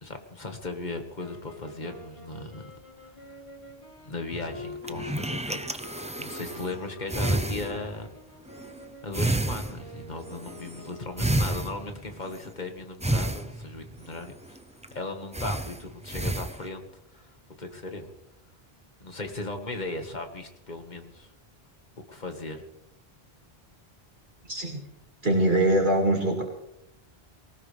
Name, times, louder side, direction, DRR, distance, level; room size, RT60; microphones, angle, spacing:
voice 1, 0.0-2.7 4.0-5.6 5.9-8.1 9.0-14.6 14.9-16.9 17.1-17.3 17.6-18.1 19.0-21.3 22.1-22.6, left 2 dB, 45° left, 5 dB, 1.9 m, -37 dB
sound 1, 1.1-11.6, left 2 dB, 30° left, 3.3 m, -45 dB
sound 2, 4.3-6.8 7.1-8.1 8.5-8.8 9.1-12.5 13.0-14.6 14.8-14.9 15.3-16.7, right 1 dB, 10° right, 0.4 m, -31 dB
voice 2, 24.4-24.8 25.2-26.4, right 1 dB, 55° right, 0 dB, 2.4 m, -23 dB
19.5 x 18.5 x 3.4 m, 0.83 s
omnidirectional pair, 1.0 m